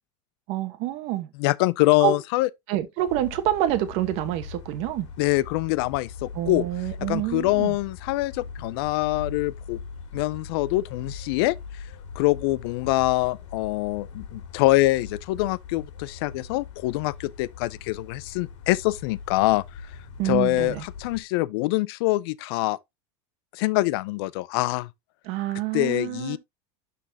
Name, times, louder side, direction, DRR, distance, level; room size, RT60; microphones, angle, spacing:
voice 1, 0.5-1.3 2.0-2.1 2.7-5.1 6.3-7.8 20.2-20.9 25.2-26.4, right 13 dB, 45° right, 1.1 m, -27 dB
voice 2, 1.4-2.5 5.2-6.6 7.1-9.8 10.1-11.6 12.2-19.6 20.2-22.8 23.5-24.9 25.7-26.4, left 19 dB, 55° left, 0.4 m, -24 dB
sound 1, 3.1-21.2, left 5 dB, 85° left, 2.1 m, -41 dB
12.0 x 4.0 x 2.7 m
supercardioid pair, 165°, 15 cm